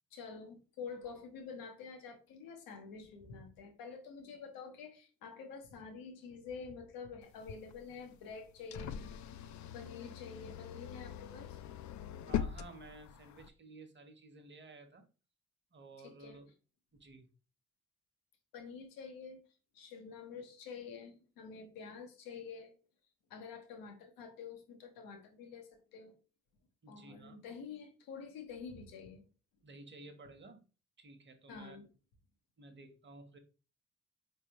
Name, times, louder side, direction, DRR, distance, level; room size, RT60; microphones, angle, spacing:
voice 1, 0.1-11.6 16.0-16.4 18.5-19.4 19.7-22.8 23.3-26.1 26.9-29.2 31.5-31.8, left 5 dB, 85° left, 5 dB, 1.0 m, -48 dB
sound 1, 7.2-13.5, left 9 dB, 60° left, 0.4 m, -42 dB
voice 2, 12.3-15.1 15.7-16.5 16.9-17.3 26.8-27.5 29.6-30.6 31.0-31.8 32.6-33.4, right 2 dB, 35° right, 6 dB, 1.1 m, -54 dB
4.2 x 3.4 x 2.9 m, 0.33 s
supercardioid pair, 60°, 34 cm